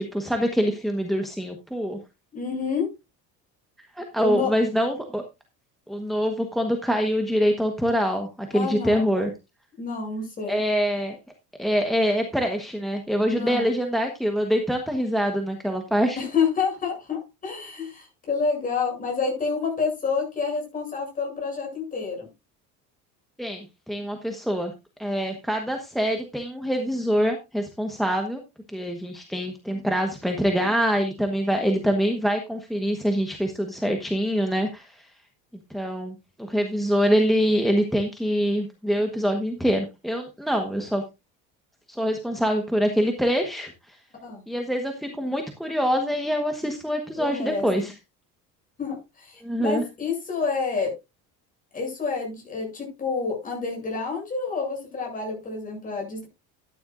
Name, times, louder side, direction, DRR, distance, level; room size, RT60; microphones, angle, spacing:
voice 1, 0.0-2.0 3.8-5.2 5.9-9.3 10.5-11.1 11.6-16.2 23.4-24.7 25.0-28.4 28.7-35.1 35.7-41.0 41.9-44.0 44.5-47.9 49.4-49.8, equal, ahead, 4 dB, 1.2 m, -25 dB
voice 2, 2.3-2.9 4.2-4.5 8.5-9.1 9.8-10.6 13.4-13.6 16.2-22.3 44.2-44.4 47.2-47.7 48.8-50.9 51.7-56.3, left 5 dB, 25° left, 0 dB, 7.6 m, -28 dB
13.5 x 10.5 x 2.5 m, 0.25 s
cardioid pair, 145°, 32 cm